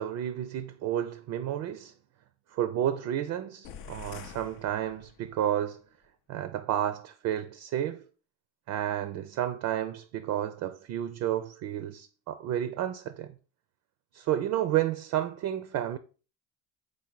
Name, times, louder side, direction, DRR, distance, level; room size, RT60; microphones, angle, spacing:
voice 1, 0.0-1.9 2.5-5.8 6.3-8.0 8.7-13.3 14.1-16.0, right 11 dB, 55° right, 0.5 m, -31 dB
sound 1, 3.6-5.5, left 8 dB, 70° left, 0.6 m, -46 dB
3.9 x 3.3 x 3.8 m
hypercardioid pair, 65°, 34 cm